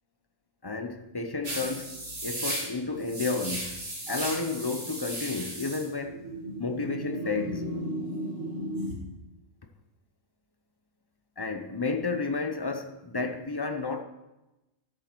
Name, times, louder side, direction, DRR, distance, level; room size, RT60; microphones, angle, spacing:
voice 1, 0.6-3.8 4.1-6.2 6.6-7.7 11.4-14.0, left 3 dB, 25° left, 0.6 m, -31 dB
sound 1, 1.4-8.9, right 1 dB, 50° right, 2.6 m, -35 dB
11.5 x 7.7 x 4.5 m
omnidirectional pair, 1.4 m